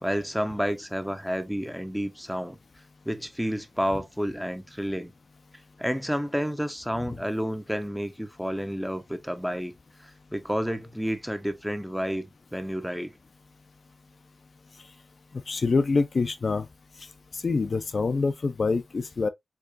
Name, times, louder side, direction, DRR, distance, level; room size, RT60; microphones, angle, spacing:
voice 1, 0.0-2.6 3.1-5.1 5.8-9.7 10.0-13.1, equal, ahead, 0.5 m, -30 dB
voice 2, 15.5-16.7 17.3-19.3, left 4 dB, 55° left, 0.4 m, -25 dB
4.6 x 2.4 x 2.4 m
wide cardioid pair, 90°, 0 cm